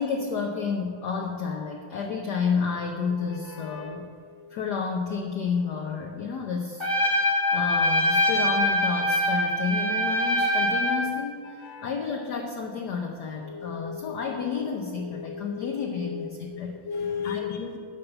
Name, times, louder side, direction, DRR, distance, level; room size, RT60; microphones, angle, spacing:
voice 1, 0.0-4.1 4.5-6.9 7.5-16.8 17.2-17.8, left 5 dB, 65° left, 2 dB, 1.1 m, -30 dB
voice 2, 3.4-4.6 7.2-7.6 11.6-11.9 13.4-14.4 15.0-17.6, left 7 dB, 40° left, 3 dB, 1.0 m, -37 dB
Trumpet, 6.8-11.1, left 1 dB, 15° left, 1.1 m, -23 dB
11.0 x 5.3 x 6.8 m, 2.1 s
omnidirectional pair, 2.4 m